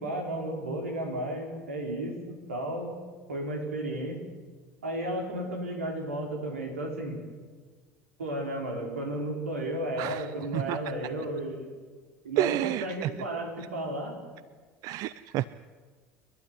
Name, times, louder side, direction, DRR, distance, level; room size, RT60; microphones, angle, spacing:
voice 1, 0.0-3.0 3.3-4.2 4.8-7.2 8.2-11.7 12.2-14.2, right 1 dB, 85° right, 2 dB, 4.7 m, -33 dB
voice 2, 12.4-13.1 14.8-15.5, right 14 dB, 55° right, 18 dB, 0.6 m, -29 dB
28.5 x 12.0 x 9.7 m, 1.5 s
hypercardioid pair, 65°, 7 cm